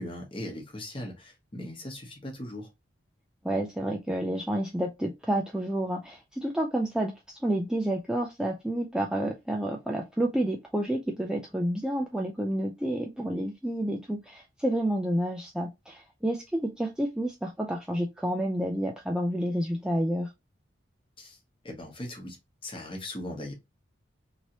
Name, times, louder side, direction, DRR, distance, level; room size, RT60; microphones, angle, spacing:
voice 1, 0.0-2.7 21.2-21.4 21.6-22.4 22.6-23.5, left 1 dB, 25° left, 1.0 m, -39 dB
voice 2, 3.4-20.3, right 1 dB, 5° right, 0.3 m, -29 dB
3.1 x 2.8 x 2.8 m
head